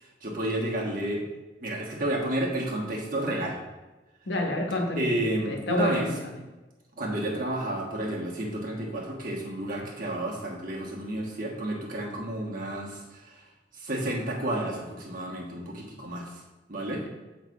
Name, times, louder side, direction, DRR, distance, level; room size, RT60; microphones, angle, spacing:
voice 1, 0.2-1.2 1.6-3.6 4.9-6.1 7.0-13.4 13.7-16.3 16.7-17.0, right 1 dB, 50° right, -2 dB, 1.4 m, -31 dB
voice 2, 4.2-6.1, left 1 dB, 85° left, 1 dB, 1.1 m, -29 dB
8.0 x 3.2 x 4.7 m, 1.1 s
head